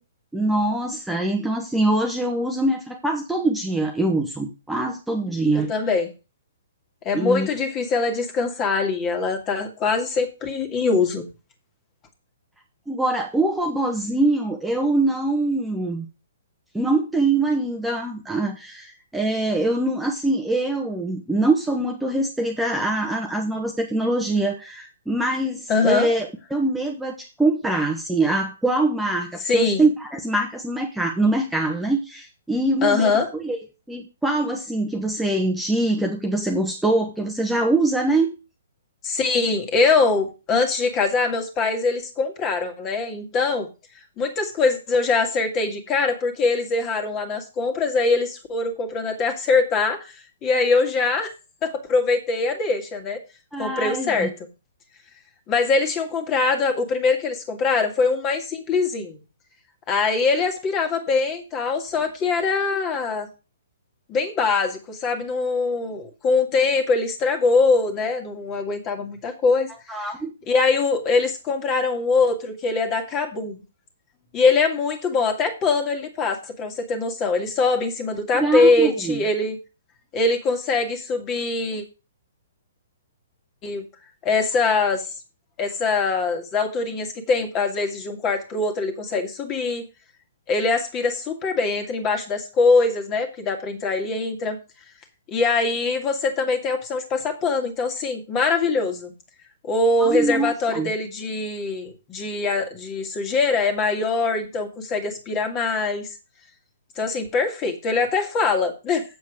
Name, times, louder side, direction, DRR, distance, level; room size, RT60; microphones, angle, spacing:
voice 1, 0.3-5.7 7.1-7.5 12.9-16.0 16.7-33.6 33.9-38.3 53.5-54.3 69.9-70.3 78.3-79.2 100.0-100.9, right 2 dB, 5° right, 1 dB, 1.3 m, -23 dB
voice 2, 5.7-6.1 7.0-11.2 25.7-26.1 29.4-29.9 32.8-33.3 39.0-43.7 44.2-50.1 50.4-51.3 51.6-53.2 53.6-54.3 55.5-59.2 59.9-63.3 64.1-69.7 70.5-73.6 74.3-79.6 80.1-81.8 83.6-83.8 84.2-85.1 85.6-89.8 90.5-94.6 95.3-99.1 99.7-106.1 107.0-109.0, left 4 dB, 25° left, 5 dB, 2.3 m, -23 dB
8.1 x 7.7 x 5.0 m, 0.30 s
figure-of-eight pair, 120°, 0 cm